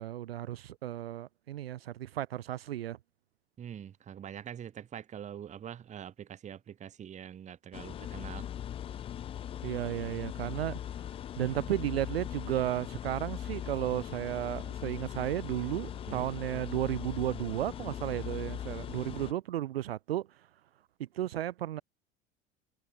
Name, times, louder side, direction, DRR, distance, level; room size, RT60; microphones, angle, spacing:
voice 1, 0.0-3.0 9.6-10.8 11.4-20.3 21.1-21.8, right 13 dB, 70° right, 0.7 m, -34 dB
voice 2, 3.6-8.5 16.1-16.3, right 9 dB, 20° right, 0.8 m, -44 dB
sound 1, 7.7-19.3, left 10 dB, 20° left, 0.4 m, -40 dB
figure-of-eight pair, 70°, 31 cm